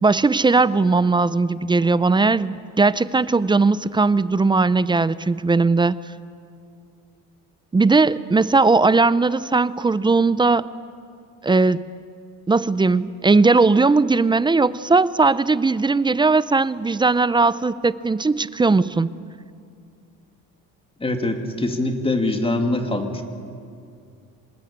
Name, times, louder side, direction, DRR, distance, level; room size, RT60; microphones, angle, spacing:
voice 1, 0.0-6.0 7.7-10.7 11.4-11.9 12.5-19.1, right 3 dB, 15° right, 17 dB, 0.5 m, -18 dB
voice 2, 21.0-23.2, left 2 dB, 15° left, 5 dB, 2.4 m, -23 dB
26.5 x 19.5 x 8.7 m, 2.4 s
cardioid pair, 115°, 33 cm